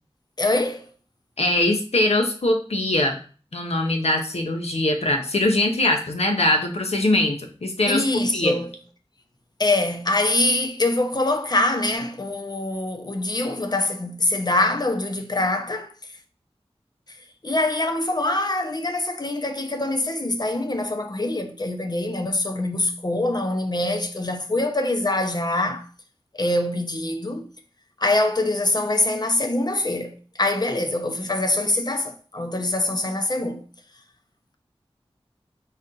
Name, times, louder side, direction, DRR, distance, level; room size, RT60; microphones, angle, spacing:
voice 1, 0.4-0.9 7.9-8.7 9.6-15.9 17.4-25.9 26.3-27.5 28.0-33.6, left 2 dB, 40° left, 0.6 m, -24 dB
voice 2, 1.4-3.2 3.5-8.0 8.3-8.6, left 1 dB, 80° left, 0.8 m, -22 dB
4.2 x 2.5 x 3.8 m
wide cardioid pair, 50°, 11 cm